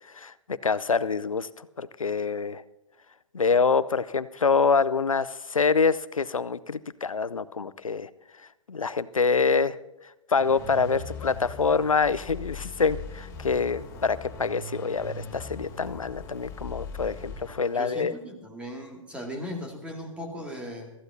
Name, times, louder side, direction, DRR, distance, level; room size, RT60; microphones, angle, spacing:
voice 1, 0.1-2.6 3.3-8.1 8.7-9.8 10.3-18.1, left 5 dB, 85° left, 17 dB, 0.6 m, -26 dB
sound 1, 10.4-18.1, left 3 dB, 15° left, 3.4 m, -40 dB
voice 2, 17.7-20.9, equal, 5° right, 1 dB, 2.2 m, -37 dB
23.5 x 14.5 x 2.7 m, 0.93 s
figure-of-eight pair, 115°, 17 cm